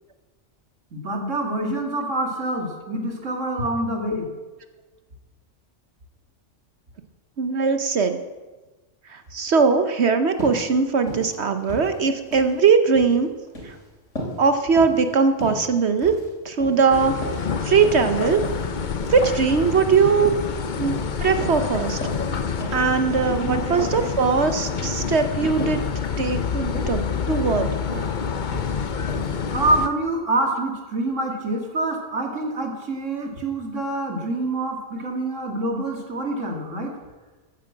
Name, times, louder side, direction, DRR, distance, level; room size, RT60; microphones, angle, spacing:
voice 1, 0.9-4.3 23.4-24.1 24.7-24.9 26.7-26.9 27.9-28.1 29.5-36.9, right 2 dB, 80° right, 2 dB, 2.7 m, -26 dB
voice 2, 7.4-8.1 9.1-13.3 13.6-13.7 14.4-16.1 16.4-17.2 17.6-18.4 19.1-20.3 20.8-22.0 22.7-25.8 26.2-27.7, right 5 dB, 65° right, 8 dB, 1.2 m, -20 dB
sound 1, 10.4-10.6 11.0-11.3 11.6-12.5 12.8-13.1 13.5-13.8 14.2-14.4 14.8-15.1 15.4-15.7 16.0-16.3 16.6-16.9 17.2-18.1 18.4-18.6 19.0-19.2 19.7-19.9 20.2-20.5 20.8-21.1 21.4-21.6 22.0-22.3 22.6-22.8 23.2-23.4 23.8-24.1 24.4-24.6 25.0-25.2 25.6-25.9 26.2-26.3 26.7-27.0 27.3-27.6 27.9-28.2 28.5-28.7 29.1-29.4 29.7-29.8, equal, 80° left, 4.1 m, -34 dB
sound 2, 16.9-29.9, left 6 dB, 45° left, 0.8 m, -27 dB
14.5 x 9.2 x 7.3 m, 1.2 s
omnidirectional pair, 1.3 m